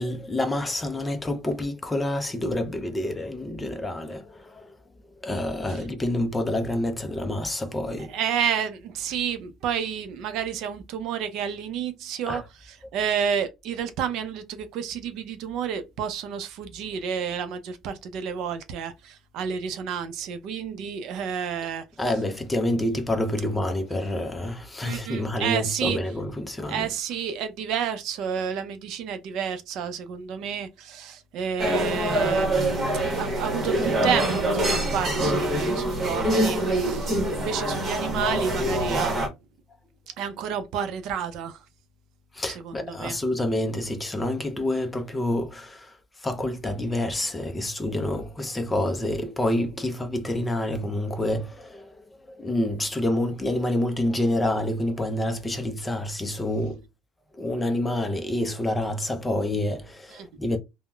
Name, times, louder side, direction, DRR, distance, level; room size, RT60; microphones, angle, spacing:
voice 1, 0.0-4.7 5.2-8.2 12.3-12.4 22.0-26.9 42.3-56.8 57.3-60.6, left 1 dB, 10° left, 0.4 m, -28 dB
voice 2, 8.1-21.8 24.8-26.0 26.7-39.1 40.2-41.6 42.6-43.2 60.1-60.3, right 7 dB, 60° right, 0.5 m, -30 dB
sound 1, 31.6-39.3, right 1 dB, 25° right, 1.0 m, -25 dB
3.7 x 2.0 x 2.2 m
cardioid pair, 145°, 0 cm